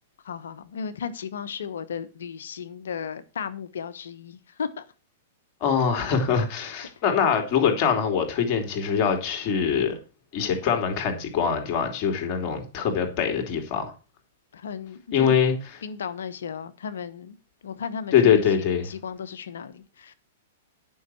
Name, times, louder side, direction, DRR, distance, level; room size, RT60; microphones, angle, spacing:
voice 1, 0.2-4.8 14.5-15.3 15.8-17.4 17.6-20.1, left 7 dB, 70° left, 1.0 m, -35 dB
voice 2, 5.6-10.0 10.3-13.9 15.1-15.8 18.1-18.9, left 7 dB, 40° left, 2.9 m, -23 dB
10.0 x 5.6 x 6.1 m
figure-of-eight pair, 105°, 0 cm